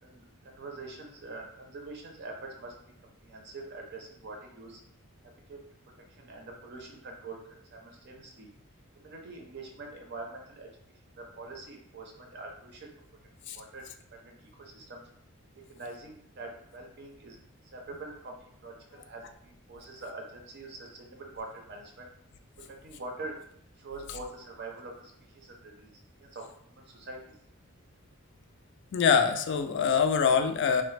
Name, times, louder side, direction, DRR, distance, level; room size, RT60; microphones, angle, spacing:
voice 1, 0.0-2.7 3.0-4.8 5.2-5.7 6.2-8.5 9.0-10.7 11.1-12.9 13.4-15.0 15.5-17.4 17.7-22.1 22.7-23.5 23.8-25.9 26.2-27.2, right 2 dB, 50° right, 1 dB, 0.6 m, -44 dB
voice 2, 28.9-30.8, left 6 dB, 55° left, 7 dB, 0.3 m, -24 dB
3.1 x 2.1 x 3.1 m, 0.70 s
head